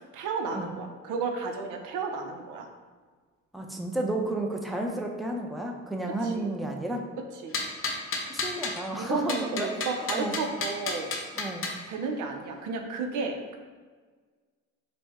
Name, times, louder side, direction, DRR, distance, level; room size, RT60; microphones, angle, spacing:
voice 1, 0.1-2.7 6.1-6.5 7.3-7.6 9.0-11.1 11.9-13.6, right 4 dB, 85° right, 4 dB, 0.6 m, -33 dB
voice 2, 3.5-7.1 8.3-9.7 10.1-10.4 11.4-11.7, right 1 dB, ahead, 0 dB, 0.6 m, -32 dB
sound 1, 7.5-8.8 9.3-11.8, left 3 dB, 45° left, 0.7 m, -32 dB
6.0 x 2.2 x 3.5 m, 1.5 s
cardioid pair, 90°, 30 cm